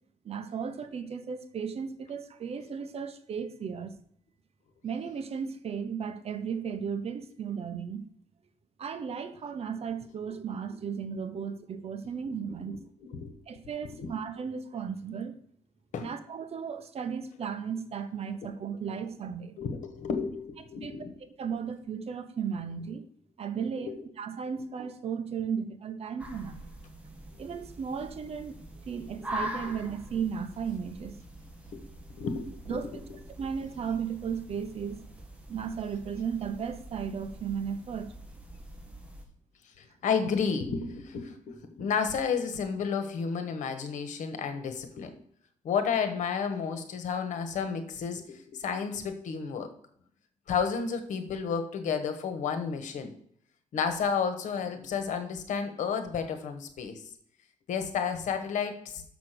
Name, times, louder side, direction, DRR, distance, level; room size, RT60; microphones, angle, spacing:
voice 1, 0.2-3.9 4.8-8.1 8.8-12.8 13.5-15.3 16.0-19.6 20.8-20.9 21.4-23.0 23.4-26.7 27.4-28.6 28.9-31.2 32.7-33.0 33.4-35.0 35.5-38.1, right 6 dB, 55° right, 9 dB, 1.1 m, -35 dB
voice 2, 19.6-21.1 23.9-24.0 29.6-29.8 31.7-31.8 32.1-32.5 39.8-45.1 45.6-49.7 50.5-53.1 53.7-57.0 57.7-59.0, left 6 dB, 90° left, 8 dB, 1.4 m, -31 dB
sound 1, 26.2-39.2, right 1 dB, 10° right, 1.8 m, -44 dB
6.8 x 6.3 x 6.7 m, 0.66 s
cardioid pair, 120°, 12 cm